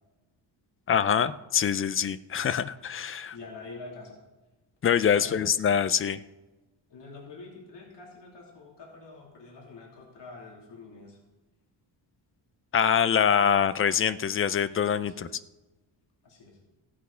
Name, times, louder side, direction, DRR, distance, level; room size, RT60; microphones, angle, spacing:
voice 1, 0.9-3.4 4.8-6.2 12.7-15.3, left 8 dB, 30° left, 14 dB, 0.3 m, -24 dB
voice 2, 3.2-4.2 5.1-5.5 6.9-11.2 15.1-15.3 16.2-16.6, left 3 dB, 65° left, -2 dB, 2.9 m, -46 dB
15.5 x 8.5 x 5.6 m, 1.1 s
wide cardioid pair, 180°, 47 cm